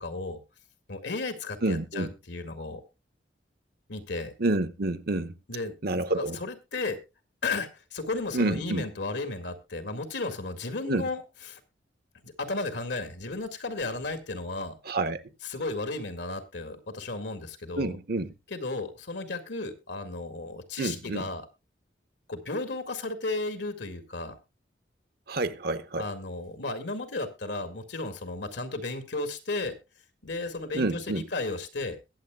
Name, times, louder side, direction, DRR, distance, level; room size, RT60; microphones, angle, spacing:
voice 1, 0.0-0.4 0.9-2.8 3.9-4.3 5.5-7.0 7.4-11.2 11.5-11.6 12.2-14.8 15.5-18.0 18.5-21.4 22.3-24.4 26.0-29.7 30.2-32.0, left 3 dB, 75° left, 2.1 m, -34 dB
voice 2, 1.6-2.1 4.4-5.3 5.8-6.4 8.3-8.8 10.8-11.1 14.8-15.2 17.8-18.3 20.8-21.3 25.3-26.1 30.7-31.2, right 2 dB, 60° right, 1.1 m, -28 dB
21.5 x 7.8 x 2.3 m
head